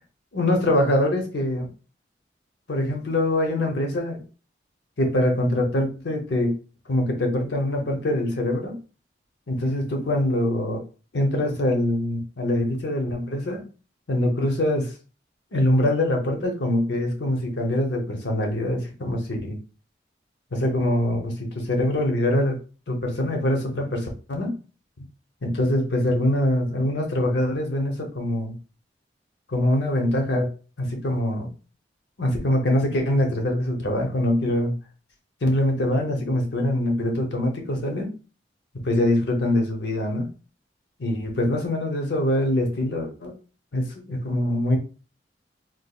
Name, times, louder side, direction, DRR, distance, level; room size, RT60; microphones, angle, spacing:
voice 1, 0.3-1.7 2.7-4.2 5.0-6.6 6.9-8.8 9.5-10.8 11.1-13.6 14.1-14.9 15.5-19.6 20.5-22.6 22.9-24.6 25.0-25.1 25.4-28.5 29.5-30.5 30.8-31.5 32.2-34.8 35.4-38.1 38.7-40.3 41.0-43.3 43.7-44.8, left 1 dB, 75° left, 2 dB, 0.8 m, -24 dB
4.1 x 2.4 x 2.4 m, 0.35 s
head